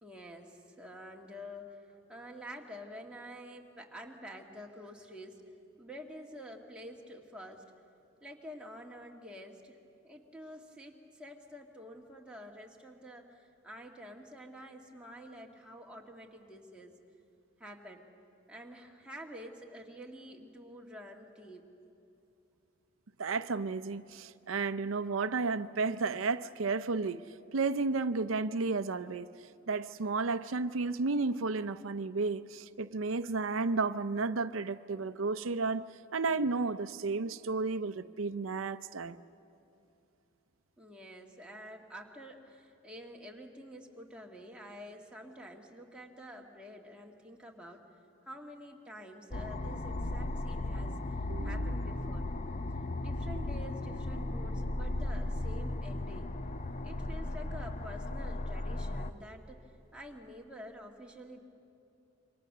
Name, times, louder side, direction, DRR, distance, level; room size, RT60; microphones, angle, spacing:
voice 1, 0.0-5.4 5.8-7.6 8.2-9.8 10.0-16.9 17.6-18.1 18.5-21.6 40.8-47.8 48.2-51.0 51.4-52.3 53.0-56.3 56.8-59.6 59.9-61.4, equal, 5° right, 2.0 m, -48 dB
voice 2, 23.2-27.2 27.5-29.3 29.7-35.9 36.1-39.2 51.3-51.7, right 4 dB, 85° right, 0.6 m, -32 dB
sound 1, 49.3-59.1, left 2 dB, 40° left, 0.7 m, -36 dB
27.5 x 24.5 x 6.7 m
head